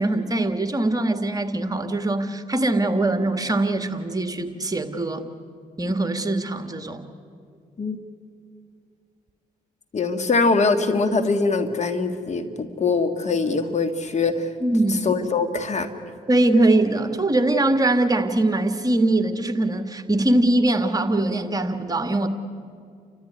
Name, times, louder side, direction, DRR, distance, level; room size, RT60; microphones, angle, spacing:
voice 1, 0.0-5.2 5.8-7.0 14.6-15.0 16.3-22.3, right 2 dB, 25° right, 8 dB, 1.8 m, -22 dB
voice 2, 9.9-14.5 14.9-15.9, left 4 dB, 45° left, 9 dB, 1.8 m, -23 dB
29.5 x 14.0 x 9.7 m, 2.3 s
supercardioid pair, 65°, 16 cm